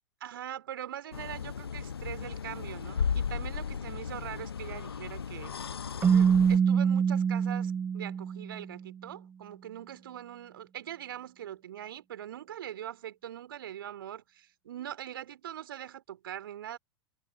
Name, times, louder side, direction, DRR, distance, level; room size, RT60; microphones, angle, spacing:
voice 1, 0.2-5.5 6.1-16.8, right 11 dB, 65° right, 3.9 m, -42 dB
sound 1, 1.1-6.6, left 6 dB, 75° left, 0.9 m, -35 dB
Keyboard (musical), 6.0-8.8, right 7 dB, 15° right, 0.4 m, -25 dB
figure-of-eight pair, 85°, 13 cm